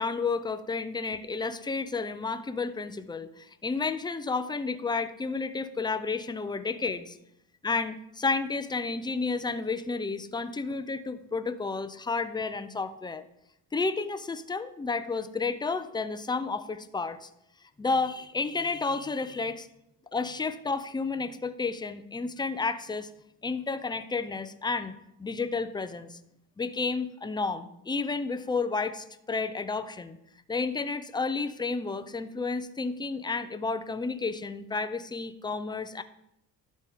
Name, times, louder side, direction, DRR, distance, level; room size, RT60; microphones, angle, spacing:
voice 1, 0.0-7.2 7.6-13.2 13.7-17.3 17.8-19.7 20.1-23.1 23.4-24.9 25.2-26.2 26.6-30.2 30.5-36.0, left 4 dB, 10° left, 11 dB, 0.5 m, -31 dB
12.0 x 4.1 x 3.6 m, 0.81 s
hypercardioid pair, 60°, 49 cm